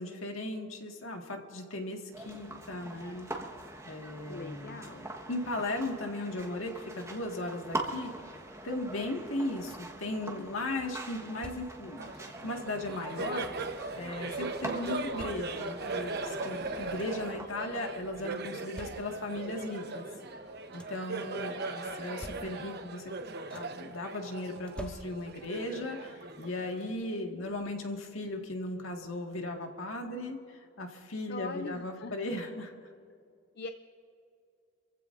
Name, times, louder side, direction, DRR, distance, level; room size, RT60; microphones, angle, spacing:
voice 1, 0.0-3.3 3.9-4.8 5.3-8.1 8.6-13.5 13.9-20.0 20.7-23.2 23.5-32.7, left 1 dB, 75° left, 2 dB, 1.8 m, -37 dB
sound 1, 2.1-17.5, right 1 dB, 15° right, 1.3 m, -43 dB
voice 2, 4.3-5.1 21.3-21.7 31.3-32.4 33.5-33.7, left 4 dB, 55° left, 7 dB, 0.5 m, -42 dB
sound 2, 9.5-10.1 11.0-12.0 12.9-13.8 14.7-15.9 16.5-16.6 16.7-17.4 18.3-19.4 20.4-21.1 21.9-22.9 23.2-23.9 24.6-25.5 26.8-26.9 27.5-27.6, equal, 5° left, 0.7 m, -50 dB
Laughter, 12.0-27.0, right 2 dB, 55° right, 1.0 m, -39 dB
27.5 x 15.5 x 2.6 m, 2.4 s
head